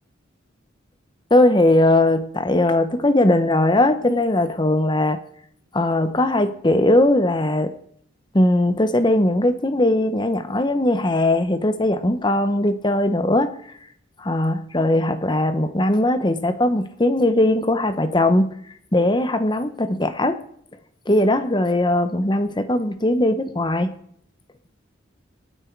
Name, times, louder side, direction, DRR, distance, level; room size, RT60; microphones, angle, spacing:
voice 1, 1.3-5.2 5.7-7.7 8.3-13.5 14.2-18.5 18.9-20.4 21.1-23.9, left 1 dB, 25° left, 10 dB, 0.9 m, -19 dB
26.5 x 9.0 x 4.6 m, 0.68 s
head